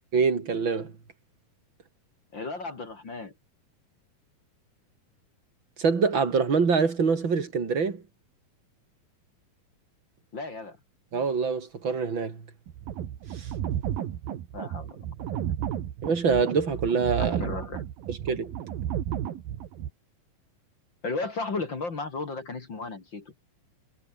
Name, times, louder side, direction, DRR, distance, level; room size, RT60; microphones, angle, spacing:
voice 1, 0.1-1.0 5.8-8.0 11.1-12.5 13.3-13.5 16.0-17.4 18.1-18.5, right 5 dB, 35° right, 3.3 m, -25 dB
voice 2, 2.3-3.3 10.3-10.8 14.5-15.0 15.3-15.5 17.2-17.9 21.0-23.3, left 3 dB, 35° left, 3.0 m, -34 dB
sound 1, 12.7-19.9, right 10 dB, 75° right, 3.6 m, -33 dB
omnidirectional pair, 4.2 m